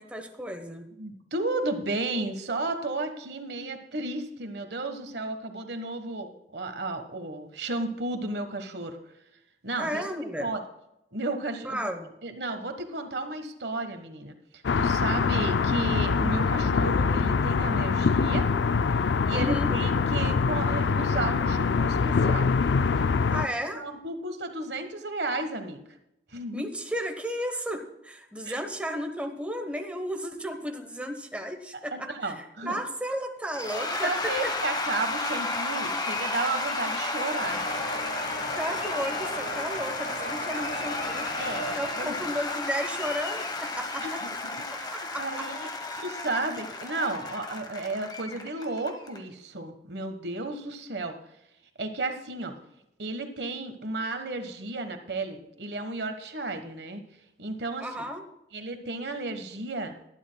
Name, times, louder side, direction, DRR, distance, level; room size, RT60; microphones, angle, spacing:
voice 1, 0.0-0.9 9.8-10.5 11.6-12.1 19.3-19.8 23.3-23.8 26.5-34.1 38.5-41.3 41.7-44.2 44.7-45.5 57.8-58.2, equal, 5° right, 4 dB, 1.0 m, -33 dB
voice 2, 1.0-9.0 9.6-10.1 10.4-10.6 11.1-11.9 12.2-18.5 19.0-22.5 23.4-25.8 26.3-26.6 28.4-28.6 31.9-32.7 33.7-37.6 41.3-42.1 44.0-44.1 44.8-45.7 45.9-51.2 51.8-52.6 53.0-57.0 57.4-58.1 58.5-60.0, right 2 dB, 65° right, 7 dB, 1.4 m, -33 dB
sound 1, 14.6-23.5, left 5 dB, 80° left, 0.4 m, -24 dB
Cheering / Applause / Crowd, 33.5-49.2, left 2 dB, 25° left, 1.2 m, -33 dB
sound 2, 37.4-42.8 43.5-43.6 43.8-43.9 44.3-44.4, equal, 60° left, 5.6 m, -37 dB
19.0 x 12.0 x 2.3 m, 0.85 s
head